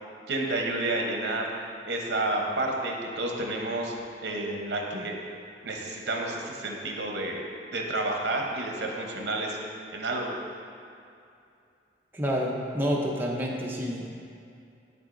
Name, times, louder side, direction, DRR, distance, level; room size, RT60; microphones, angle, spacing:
voice 1, 0.3-1.5 1.8-3.9 4.2-5.2 5.6-9.6 9.9-10.3, right 2 dB, 65° right, 1 dB, 0.8 m, -30 dB
voice 2, 12.1-14.1, equal, 10° right, -2 dB, 0.6 m, -28 dB
11.0 x 3.8 x 2.6 m, 2.5 s
head